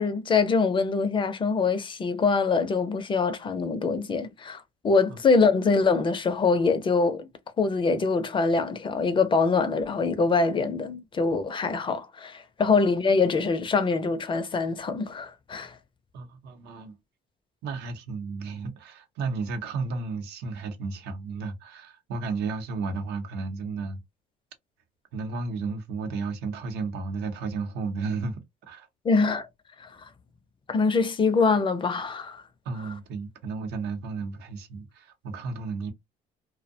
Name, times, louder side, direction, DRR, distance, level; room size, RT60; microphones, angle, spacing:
voice 1, 0.0-7.3 7.6-15.8 29.0-29.5 29.8-29.9 30.7-32.4, left 4 dB, 30° left, 0.5 m, -24 dB
voice 2, 16.1-17.0 17.6-24.0 25.1-28.4 28.7-28.9 32.6-35.9, right 4 dB, 80° right, 0.7 m, -33 dB
2.6 x 2.1 x 2.5 m
cardioid pair, 110°, 17 cm